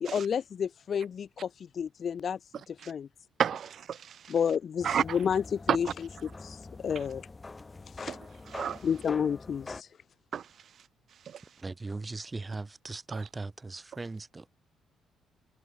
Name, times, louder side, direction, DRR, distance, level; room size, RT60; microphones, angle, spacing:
voice 1, 0.0-1.5 1.7-2.4 2.7-3.1 4.3-5.9 6.4-6.6 6.8-7.2 8.0-8.2 8.8-9.9, left 7 dB, 50° left, 0.5 m, -30 dB
voice 2, 3.4-4.3 4.8-5.2 5.7-5.9 8.1-8.2 8.5-8.8 10.3-10.5 11.3-11.4 13.1-13.2, right 8 dB, 60° right, 0.6 m, -31 dB
sound 1, 4.8-9.8, left 3 dB, 25° left, 2.7 m, -45 dB
voice 3, 11.6-14.5, right 3 dB, 25° right, 1.0 m, -38 dB
cardioid pair, 90°, 0 cm